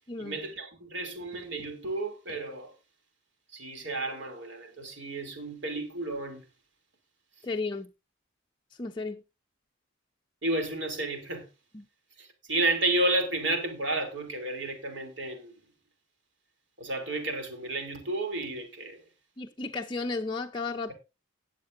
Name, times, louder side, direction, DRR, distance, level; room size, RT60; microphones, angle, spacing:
voice 1, 0.2-2.7 3.5-6.4 10.4-11.5 12.2-15.5 16.8-19.0, right 2 dB, 60° right, 3.1 m, -32 dB
voice 2, 7.4-7.9 8.8-9.2 11.7-11.9 19.4-20.9, left 3 dB, 20° left, 0.6 m, -33 dB
19.5 x 7.4 x 2.6 m
head